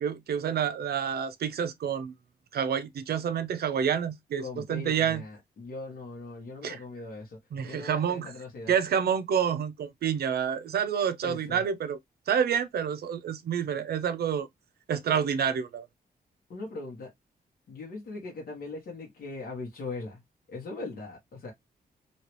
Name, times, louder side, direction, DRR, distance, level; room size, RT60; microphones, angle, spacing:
voice 1, 0.0-2.1 2.5-5.2 6.6-6.8 7.5-8.3 8.7-12.0 12.3-14.5 14.9-15.9, right 8 dB, 90° right, 0.6 m, -28 dB
voice 2, 4.4-8.7 11.2-11.6 16.5-17.1 17.7-20.2 20.5-21.5, left 3 dB, 70° left, 1.3 m, -40 dB
3.1 x 2.8 x 3.0 m
wide cardioid pair, 170°, 16 cm